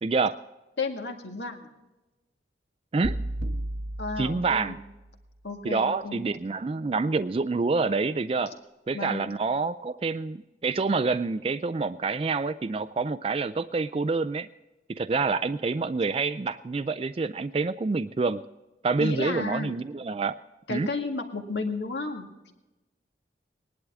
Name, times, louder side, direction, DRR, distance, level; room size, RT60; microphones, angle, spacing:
voice 1, 0.0-0.4 2.9-3.2 4.2-4.8 5.6-8.6 8.9-14.5 14.9-18.4 18.8-20.4 20.7-20.9, right 4 dB, 30° right, 11 dB, 0.3 m, -27 dB
voice 2, 0.8-1.7 4.0-4.7 5.4-6.3 8.9-9.3 19.0-19.8 20.7-22.5, left 3 dB, 75° left, 4 dB, 1.9 m, -33 dB
sound 1, 3.0-5.1, right 1 dB, 75° right, 1.0 m, -34 dB
19.5 x 11.5 x 3.6 m, 1.0 s
head